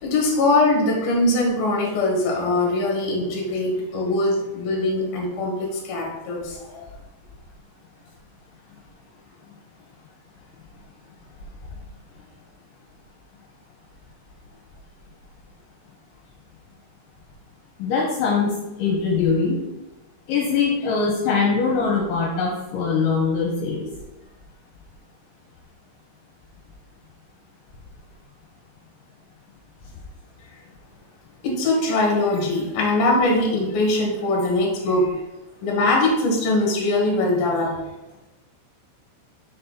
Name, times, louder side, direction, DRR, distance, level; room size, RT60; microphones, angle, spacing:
voice 1, 0.0-6.9 31.4-35.2 35.6-37.7, left 2 dB, 60° left, -2 dB, 3.0 m, -22 dB
voice 2, 17.8-18.5 18.8-19.6 20.3-23.8, left 5 dB, 80° left, -2 dB, 3.1 m, -22 dB
7.0 x 4.2 x 4.1 m, 1.0 s
omnidirectional pair, 5.5 m